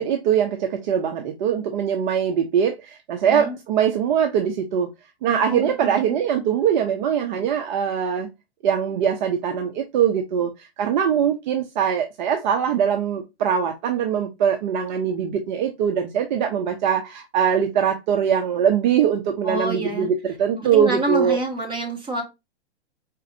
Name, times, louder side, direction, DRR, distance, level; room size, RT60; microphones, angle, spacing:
voice 1, 0.0-4.9 5.2-8.3 8.6-21.4, right 8 dB, 45° right, 0.8 m, -22 dB
voice 2, 5.5-6.2 19.4-20.1 20.6-22.2, right 1 dB, 15° right, 1.9 m, -27 dB
5.1 x 4.1 x 2.6 m
hypercardioid pair, 125°, 33 cm